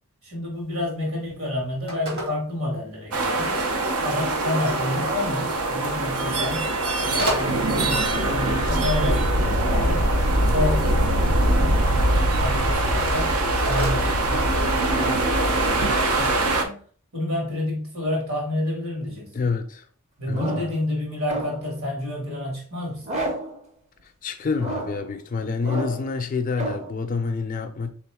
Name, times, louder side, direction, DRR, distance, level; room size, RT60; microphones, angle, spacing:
voice 1, 0.2-3.6 4.0-6.7 7.0-10.2 10.5-12.1 12.4-13.4 13.6-16.8 17.1-19.3 20.2-23.2, left 1 dB, 65° right, 1.9 m, -30 dB
Telephone, 0.5-15.0, equal, 50° right, 1.4 m, -37 dB
sound 1, 3.1-16.6, right 1 dB, 80° right, 0.7 m, -22 dB
voice 2, 19.3-19.8 20.3-20.7 24.0-27.9, left 4 dB, 35° left, 0.4 m, -27 dB
sound 2, 20.3-20.8 21.3-21.8 23.0-23.6 24.5-25.1 25.6-26.1 26.6-26.9, right 1 dB, 30° right, 0.6 m, -31 dB
3.5 x 3.0 x 3.4 m
head